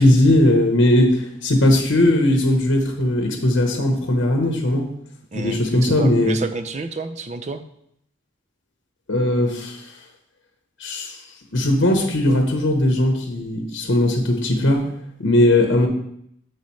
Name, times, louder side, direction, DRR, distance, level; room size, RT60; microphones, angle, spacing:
voice 1, 0.0-4.8 5.3-6.4 9.1-9.8 10.8-11.2 11.5-14.8 15.2-15.9, left 1 dB, 80° left, 3 dB, 1.0 m, -18 dB
voice 2, 5.3-7.6, right 3 dB, 35° right, 8 dB, 0.5 m, -29 dB
7.0 x 6.5 x 3.2 m, 0.72 s
head